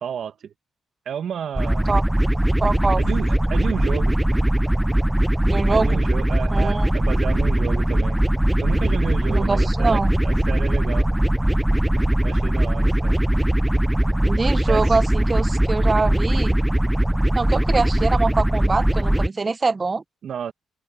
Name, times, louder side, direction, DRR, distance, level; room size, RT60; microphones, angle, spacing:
voice 1, 0.0-0.5 1.1-1.9 3.0-4.2 5.7-8.2 8.6-11.1 12.2-13.2 14.7-14.8 20.2-20.5, right 8 dB, 65° right, 1.8 m, -31 dB
sound 1, 1.6-19.3, right 1 dB, 5° right, 0.5 m, -20 dB
voice 2, 2.6-3.0 5.5-6.0 6.5-6.9 9.3-10.1 14.2-16.6 17.3-20.0, right 3 dB, 35° right, 1.0 m, -24 dB
open air
supercardioid pair, 60°, 0 cm